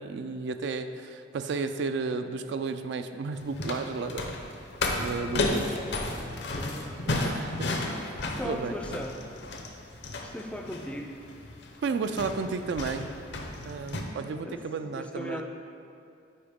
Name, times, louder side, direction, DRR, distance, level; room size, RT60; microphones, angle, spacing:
voice 1, 0.0-4.4 5.0-5.8 7.1-8.7 11.8-13.1 13.6-15.4, right 4 dB, 70° right, 9 dB, 0.3 m, -33 dB
sound 1, 3.3-14.0, left 2 dB, 65° left, 0.7 m, -33 dB
voice 2, 6.0-7.1 8.4-9.2 10.2-11.1 14.4-15.4, left 1 dB, 5° left, 2 dB, 0.4 m, -38 dB
8.5 x 4.8 x 3.6 m, 2.5 s
head